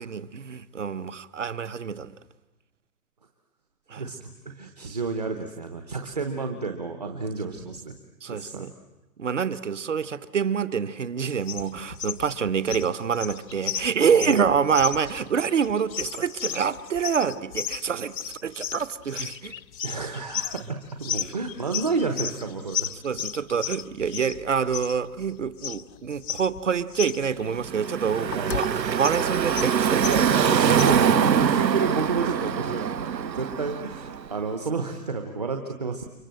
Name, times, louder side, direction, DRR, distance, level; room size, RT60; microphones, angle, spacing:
voice 1, 0.0-2.1 3.9-4.0 8.2-8.7 9.2-18.1 18.4-19.5 23.0-30.1, right 6 dB, 45° right, 1.0 m, -26 dB
voice 2, 3.9-7.9 8.3-8.7 14.3-14.4 19.8-22.9 28.4-28.5 29.9-36.0, right 4 dB, 25° right, 1.0 m, -30 dB
sound 1, 11.4-31.1, left 9 dB, 90° left, 0.9 m, -34 dB
Car passing by / Traffic noise roadway noise, 27.5-34.4, right 8 dB, 80° right, 1.5 m, -24 dB
30.0 x 25.0 x 7.7 m
hypercardioid pair, 180°, 49 cm